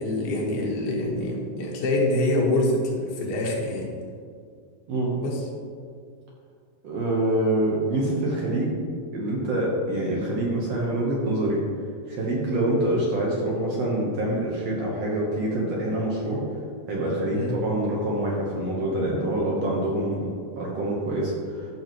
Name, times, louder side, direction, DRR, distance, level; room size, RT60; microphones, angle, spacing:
voice 1, 0.0-3.9 5.2-5.4 17.3-17.5, left 1 dB, 80° left, -3 dB, 3.4 m, -25 dB
voice 2, 6.8-8.8 9.1-11.6 12.1-16.4 16.9-21.7, right 1 dB, 70° right, -4 dB, 1.6 m, -26 dB
14.0 x 5.9 x 3.0 m, 2.2 s
omnidirectional pair, 4.4 m